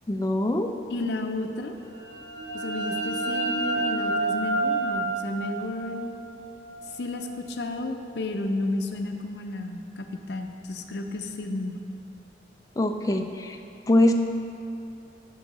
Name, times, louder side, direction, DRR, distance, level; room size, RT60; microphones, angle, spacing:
voice 1, 0.1-0.7 12.8-13.6 13.9-14.1, left 1 dB, 20° left, 5 dB, 0.4 m, -23 dB
voice 2, 0.9-1.8 2.5-6.1 7.0-11.8, left 2 dB, 70° left, 5 dB, 0.6 m, -32 dB
sound 1, 1.9-7.4, right 2 dB, 75° right, 0.9 m, -30 dB
11.0 x 4.6 x 4.2 m, 2.7 s
head